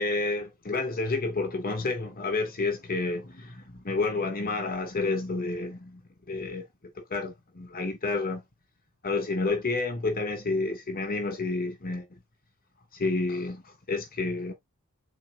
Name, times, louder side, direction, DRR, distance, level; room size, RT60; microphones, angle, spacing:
voice 1, 0.0-6.0 6.3-6.6 7.1-8.4 9.0-12.1 12.9-14.5, left 3 dB, 40° left, 2.7 m, -30 dB
11.5 x 4.6 x 2.8 m
head